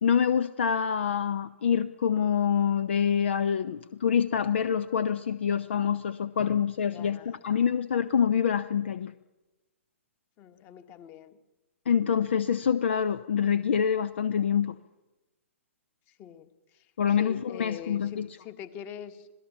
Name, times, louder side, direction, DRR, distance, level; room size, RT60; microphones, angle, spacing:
voice 1, 0.0-9.1 11.9-14.8 17.0-18.3, left 7 dB, 55° left, 15 dB, 0.8 m, -26 dB
voice 2, 6.9-7.4 10.4-11.4 16.2-16.5 16.7-16.8 17.2-19.3, left 9 dB, 25° left, 11 dB, 1.6 m, -43 dB
26.5 x 18.0 x 7.2 m, 1.1 s
figure-of-eight pair, 115°, 7 cm